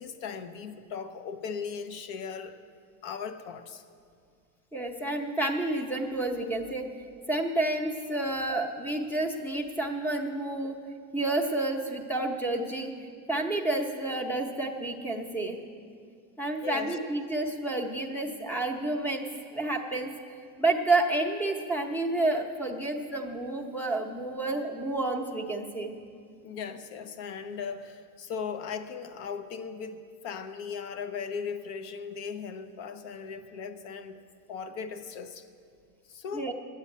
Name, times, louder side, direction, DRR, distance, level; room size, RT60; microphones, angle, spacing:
voice 1, 0.0-2.6 3.0-3.8 16.6-17.0 26.4-34.2 34.5-35.5 36.1-36.5, left 6 dB, 65° left, 10 dB, 1.0 m, -38 dB
voice 2, 4.7-6.9 7.3-10.8 11.1-12.9 13.3-15.6 16.4-19.3 19.5-20.1 20.6-26.0 36.3-36.5, right 2 dB, 5° left, 4 dB, 0.8 m, -30 dB
11.0 x 8.9 x 8.6 m, 2.2 s
cardioid pair, 150°, 41 cm